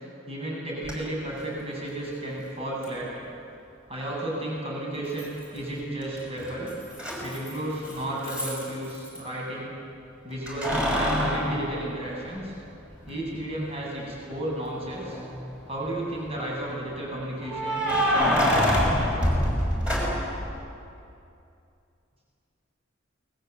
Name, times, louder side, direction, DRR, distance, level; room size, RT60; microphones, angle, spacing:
voice 1, 0.3-3.1 3.9-6.7 7.2-9.7 10.2-12.5 13.1-15.2 15.7-19.3, right 1 dB, 30° right, -4 dB, 7.2 m, -33 dB
Keys jangling, 0.8-0.9 2.8-2.9 5.2-5.7 6.0-9.2 10.5-12.6 13.1-13.2 15.0-15.5 17.5-20.4, equal, 5° right, 6.5 m, -26 dB
28.0 x 21.0 x 8.1 m, 2.6 s
head